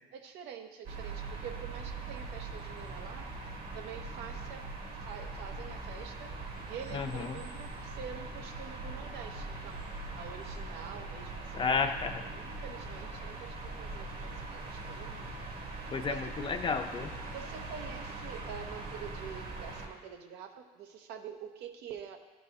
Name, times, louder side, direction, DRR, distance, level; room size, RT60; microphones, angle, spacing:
voice 1, 0.1-4.6 5.0-6.4 6.7-11.9 12.3-15.3 15.8-16.2 17.3-22.2, right 7 dB, 85° right, 5 dB, 0.7 m, -46 dB
sound 1, 0.8-19.9, right 3 dB, 65° right, 1.4 m, -41 dB
voice 2, 6.9-7.4 11.5-12.2 15.9-17.1, left 5 dB, 30° left, 7 dB, 0.6 m, -32 dB
12.0 x 4.1 x 3.5 m, 1.2 s
cardioid pair, 110°, 17 cm